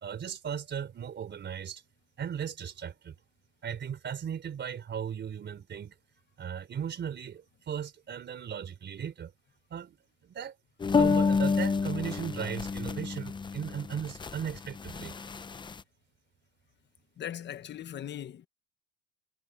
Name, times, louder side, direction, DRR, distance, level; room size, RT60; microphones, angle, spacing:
voice 1, 0.0-1.8 2.2-3.2 3.6-5.9 6.4-9.3 9.7-10.0 10.2-10.6 10.9-15.1, right 8 dB, 30° right, 3.7 m, -37 dB
sound 1, 10.8-15.8, left 5 dB, 15° left, 0.6 m, -29 dB
voice 2, 17.2-18.5, left 10 dB, 30° left, 1.1 m, -39 dB
cardioid pair, 150°, 35 cm